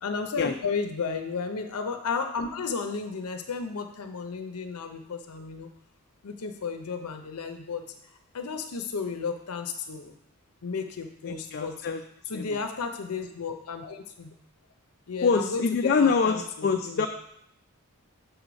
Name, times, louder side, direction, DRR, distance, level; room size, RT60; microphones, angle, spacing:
voice 1, 0.0-5.7 6.2-7.8 8.3-10.1 10.6-11.8 12.3-14.3 15.1-15.6 16.0-17.1, left 5 dB, 90° left, 6 dB, 0.6 m, -33 dB
voice 2, 11.3-12.0 12.3-12.6 15.2-17.1, left 5 dB, 45° left, 5 dB, 0.3 m, -25 dB
6.3 x 4.7 x 5.1 m, 0.75 s
head